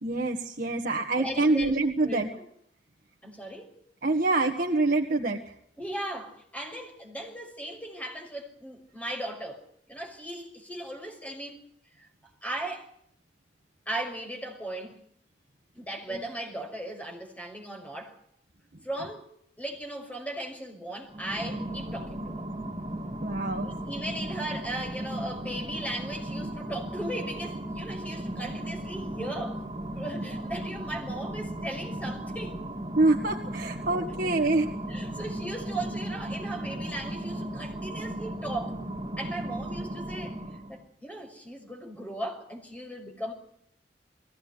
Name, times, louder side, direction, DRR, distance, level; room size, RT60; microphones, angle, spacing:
voice 1, 0.0-2.3 4.0-5.4 16.1-16.2 23.2-23.7 30.3-30.4 33.0-34.7, right 2 dB, 50° right, 1.8 m, -26 dB
voice 2, 1.2-1.7 2.0-2.3 3.2-3.8 5.8-11.6 12.0-12.1 12.4-12.9 13.9-15.0 15.7-18.2 18.8-19.3 19.6-22.4 23.6-29.6 29.9-32.6 33.9-34.1 34.4-34.5 34.9-38.8 39.2-40.4 40.7-43.3, right 1 dB, 10° left, 5.9 m, -37 dB
sound 1, 21.1-40.8, right 1 dB, 25° right, 2.4 m, -36 dB
22.0 x 17.0 x 9.6 m
head